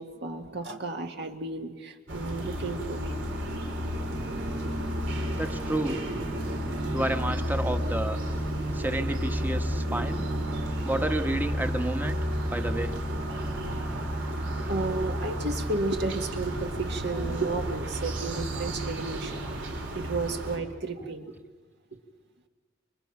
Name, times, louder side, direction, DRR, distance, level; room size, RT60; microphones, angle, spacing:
voice 1, 0.0-3.1 14.7-21.3, right 3 dB, 60° right, 4 dB, 1.9 m, -33 dB
sound 1, 2.1-20.6, equal, 80° right, 3.9 m, -31 dB
voice 2, 5.3-6.0 6.9-8.2 8.7-10.2 10.8-12.2 12.5-12.9, right 1 dB, 10° right, 7 dB, 1.2 m, -30 dB
29.0 x 25.0 x 5.9 m, 1.4 s
head